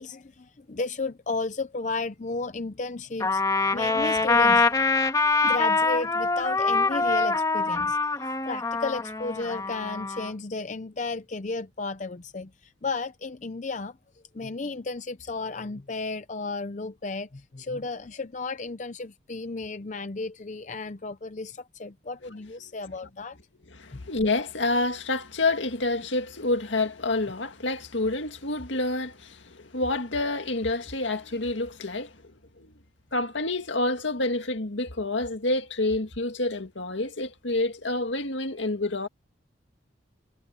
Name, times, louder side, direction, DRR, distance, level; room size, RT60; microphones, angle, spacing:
voice 1, 0.0-3.4 3.7-4.6 5.4-8.0 8.5-14.0 14.3-23.4 23.9-24.0, left 3 dB, 40° left, 0.6 m, -33 dB
Trumpet, 3.2-10.3, left 3 dB, 20° left, 1.8 m, -24 dB
voice 2, 23.7-32.7 33.1-39.1, left 2 dB, 80° left, 2.2 m, -28 dB
head